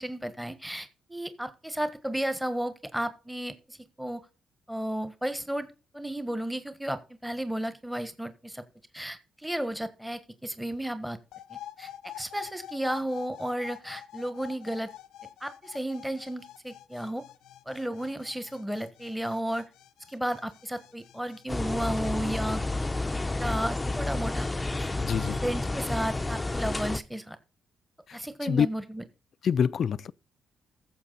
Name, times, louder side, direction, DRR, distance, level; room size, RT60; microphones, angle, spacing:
voice 1, 0.0-4.2 4.7-5.7 5.9-8.6 8.9-11.2 11.5-14.9 15.4-17.2 17.7-19.6 20.1-22.9 23.3-24.5 24.8-24.9 25.4-27.4 28.1-29.0, right 1 dB, 5° right, 1.3 m, -33 dB
sound 1, 11.3-22.5, left 12 dB, 85° left, 0.8 m, -47 dB
sound 2, 21.5-27.0, left 2 dB, 15° left, 0.7 m, -30 dB
voice 2, 25.0-25.4 28.1-28.7 29.4-30.1, left 7 dB, 55° left, 0.4 m, -26 dB
14.5 x 7.2 x 4.0 m
cardioid pair, 90°, 0 cm